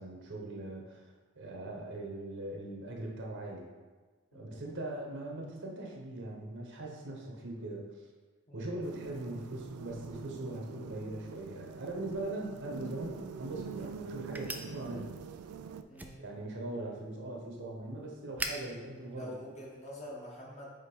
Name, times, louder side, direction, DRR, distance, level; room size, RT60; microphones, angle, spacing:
voice 1, 0.0-3.7 4.3-8.1 8.5-15.2 16.2-19.4, right 2 dB, 55° right, 0 dB, 1.1 m, -40 dB
sound 1, 8.8-15.8, right 6 dB, 80° right, 0.4 m, -45 dB
sound 2, 14.3-20.1, right 2 dB, 10° right, 0.3 m, -46 dB
voice 2, 15.9-16.3 19.2-20.7, left 1 dB, 30° left, -4 dB, 1.4 m, -46 dB
5.1 x 4.6 x 4.5 m, 1.4 s
head